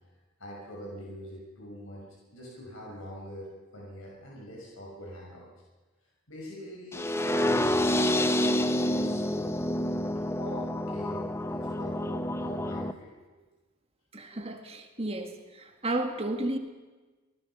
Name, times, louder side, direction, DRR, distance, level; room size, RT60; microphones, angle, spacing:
voice 1, 0.4-5.5 6.3-9.5 10.3-13.4 14.3-14.5 15.0-15.1, equal, 70° left, -3 dB, 5.7 m, -43 dB
sound 1, 6.9-12.9, left 1 dB, 10° left, 0.8 m, -28 dB
voice 2, 14.1-16.6, right 1 dB, 30° right, 5 dB, 1.9 m, -33 dB
25.5 x 19.5 x 5.6 m, 1.3 s
head